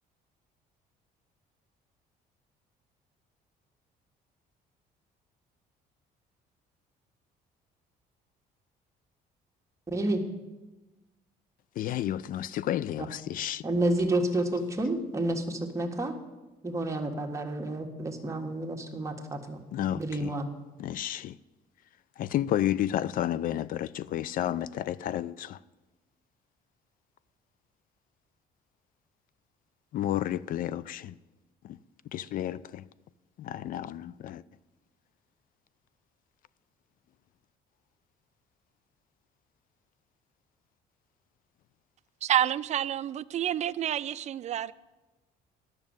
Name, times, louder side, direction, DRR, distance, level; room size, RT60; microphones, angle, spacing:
voice 1, 9.9-10.2 13.6-16.2 16.6-19.6 19.9-20.5, right 1 dB, 15° right, 1.5 m, -30 dB
voice 2, 11.8-13.6 19.7-20.3 20.8-21.4 22.2-25.6 29.9-31.2 31.6-31.8 32.1-32.9 33.4-34.4, left 11 dB, 55° left, 0.4 m, -31 dB
voice 3, 42.2-44.7, right 11 dB, 45° right, 0.4 m, -28 dB
10.5 x 6.4 x 8.8 m
cardioid pair, 110°, 17 cm